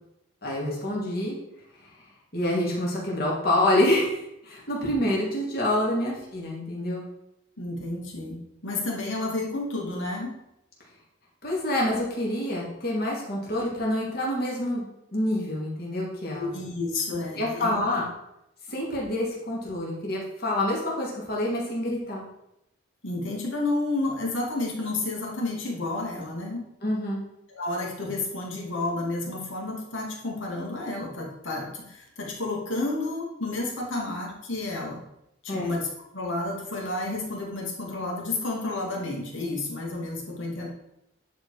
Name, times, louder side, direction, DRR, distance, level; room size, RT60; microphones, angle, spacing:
voice 1, 0.4-1.4 2.3-7.1 11.4-16.5 17.4-18.1 18.7-22.2 26.8-27.2 35.5-35.7, left 1 dB, 50° left, -4 dB, 2.8 m, -27 dB
voice 2, 7.6-10.3 16.4-18.0 23.0-26.6 27.5-35.0 35.4-35.9 36.1-40.7, left 2 dB, 75° left, -2 dB, 2.4 m, -31 dB
10.0 x 4.7 x 4.9 m, 0.84 s
head